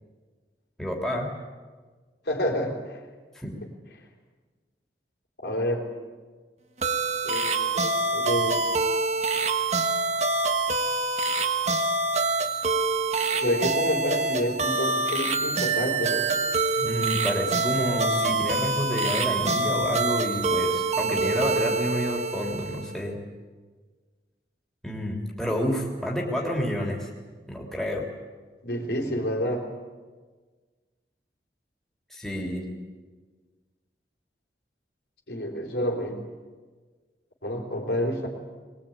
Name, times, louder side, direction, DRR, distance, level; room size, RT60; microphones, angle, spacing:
voice 1, 0.8-1.3 3.3-3.5 16.8-23.2 24.8-27.1 27.5-28.0 32.1-32.7, equal, 5° left, -2 dB, 3.2 m, -29 dB
voice 2, 2.3-3.0 5.4-5.8 7.2-8.6 13.4-16.3 28.6-29.7 35.3-36.2 37.4-38.3, equal, 70° left, 1 dB, 4.1 m, -28 dB
sound 1, 6.8-23.0, right 3 dB, 40° right, 1.5 m, -26 dB
21.5 x 21.0 x 9.0 m, 1.4 s
head